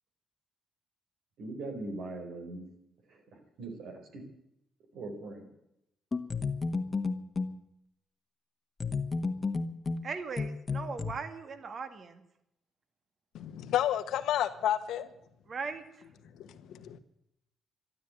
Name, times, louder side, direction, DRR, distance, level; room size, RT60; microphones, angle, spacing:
voice 1, 1.4-2.7 3.1-4.2 4.9-5.4, right 2 dB, 75° right, 4.8 m, -41 dB
sound 1, 6.1-7.6 8.8-11.1, left 4 dB, 30° left, 1.4 m, -32 dB
voice 2, 10.0-12.2 15.5-15.8, right 4 dB, 45° right, 2.0 m, -38 dB
voice 3, 13.3-15.1 16.4-17.0, left 11 dB, 80° left, 1.4 m, -31 dB
13.0 x 12.5 x 9.0 m
cardioid pair, 90°, 0 cm